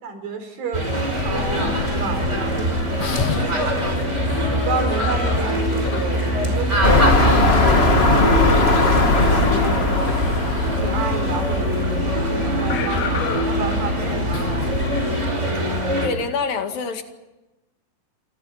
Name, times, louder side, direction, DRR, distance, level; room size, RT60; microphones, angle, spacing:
voice 1, 0.0-3.4 4.0-4.4 4.6-10.4 10.8-14.8, right 4 dB, 80° right, 6 dB, 6.0 m, -31 dB
sound 1, 0.7-16.1, right 1 dB, 20° right, 5.6 m, -23 dB
sound 2, 1.1-15.3, left 9 dB, 60° left, 2.1 m, -30 dB
sound 3, 6.8-11.8 12.4-12.5, left 3 dB, 25° left, 1.3 m, -18 dB
voice 2, 16.0-17.0, left 4 dB, 80° left, 6 dB, 3.9 m, -25 dB
30.0 x 26.0 x 5.8 m, 1.0 s
omnidirectional pair, 4.0 m